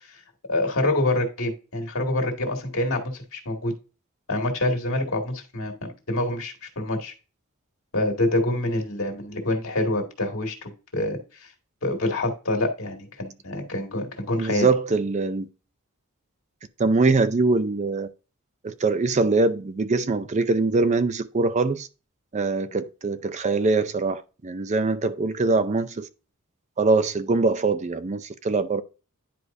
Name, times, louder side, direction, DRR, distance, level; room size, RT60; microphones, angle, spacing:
voice 1, 0.5-3.7 4.3-7.1 7.9-11.5 11.8-14.7, left 1 dB, 65° left, 2.1 m, -26 dB
voice 2, 14.4-15.5 16.8-18.1 18.6-21.9 22.3-26.1 26.8-28.8, right 3 dB, 35° right, 0.5 m, -23 dB
10.0 x 4.7 x 2.6 m
head